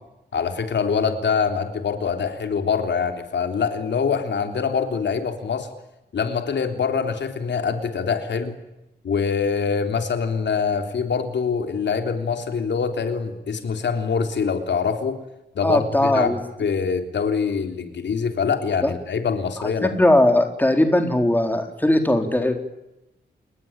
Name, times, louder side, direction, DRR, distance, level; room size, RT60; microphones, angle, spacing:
voice 1, 0.3-5.7 6.1-8.5 9.0-15.2 15.6-20.0, left 6 dB, 80° left, 6 dB, 3.5 m, -24 dB
voice 2, 15.6-16.4 18.8-18.9 19.6-22.6, left 1 dB, 10° left, 5 dB, 4.1 m, -19 dB
30.0 x 20.0 x 8.9 m, 0.93 s
wide cardioid pair, 115°, 18 cm